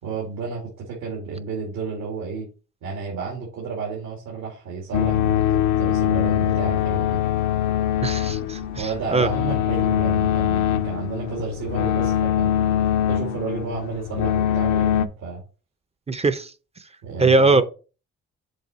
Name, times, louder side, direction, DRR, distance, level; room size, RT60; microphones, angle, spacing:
voice 1, 0.0-2.5 2.8-7.2 8.8-12.5 13.1-15.4 17.0-17.6, right 4 dB, 90° right, 2.4 m, -31 dB
sound 1, 4.9-15.1, left 10 dB, 70° left, 0.7 m, -23 dB
voice 2, 8.0-9.3 16.1-16.5 17.2-17.6, right 3 dB, 20° right, 0.5 m, -20 dB
6.9 x 3.9 x 4.1 m
cardioid pair, 90°, 30 cm